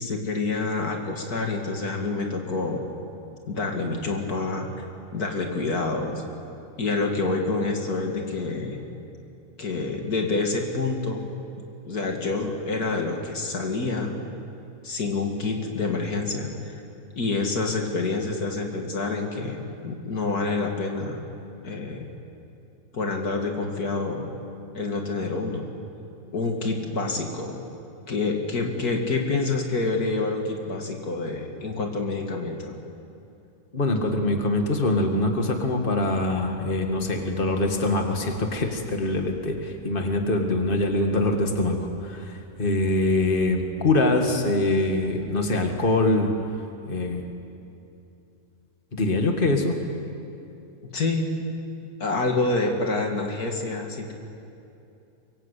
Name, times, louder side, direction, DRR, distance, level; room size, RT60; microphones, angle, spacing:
voice 1, 0.0-2.8 3.5-4.7 5.1-6.2 6.8-8.9 9.6-11.3 11.9-14.3 14.8-16.8 17.2-21.2 21.6-22.1 22.9-24.3 24.7-25.7 26.3-27.6 28.1-32.8 50.9-51.4 52.0-54.1, left 3 dB, 90° left, 2 dB, 2.9 m, -27 dB
voice 2, 33.7-46.3 46.9-47.2 48.9-49.8, left 2 dB, 35° left, 3 dB, 2.2 m, -24 dB
24.5 x 23.0 x 8.4 m, 2.7 s
omnidirectional pair, 1.6 m